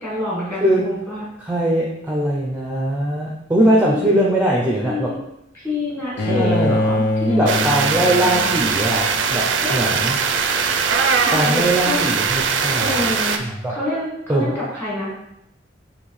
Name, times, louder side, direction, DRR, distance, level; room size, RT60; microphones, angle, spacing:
voice 1, 0.0-1.2 3.9-4.1 4.8-5.2 5.5-8.4 9.6-9.8 11.2-12.0 12.8-13.4 13.7-15.1, left 2 dB, 10° left, -7 dB, 1.6 m, -27 dB
voice 2, 1.4-5.1 6.3-6.8 7.3-10.2 11.3-13.0 13.4-13.7 14.3-14.6, right 1 dB, 10° right, -3 dB, 0.5 m, -20 dB
Bowed string instrument, 6.2-9.2, left 2 dB, 85° left, 0.5 m, -23 dB
sound 1, 7.5-13.4, right 5 dB, 80° right, 0.4 m, -20 dB
4.4 x 3.1 x 3.2 m, 0.82 s
head